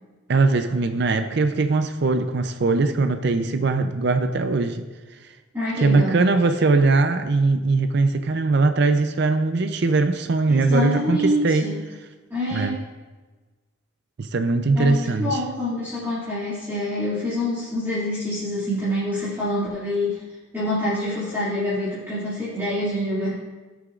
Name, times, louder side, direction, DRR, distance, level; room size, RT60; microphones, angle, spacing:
voice 1, 0.3-4.8 5.8-11.6 12.5-12.8 14.2-15.4, right 3 dB, 55° right, 8 dB, 0.5 m, -21 dB
voice 2, 5.5-6.2 10.5-11.8 12.3-12.9 14.7-20.2 20.5-23.3, left 1 dB, 10° right, -11 dB, 2.3 m, -26 dB
17.0 x 6.8 x 2.4 m, 1.3 s
head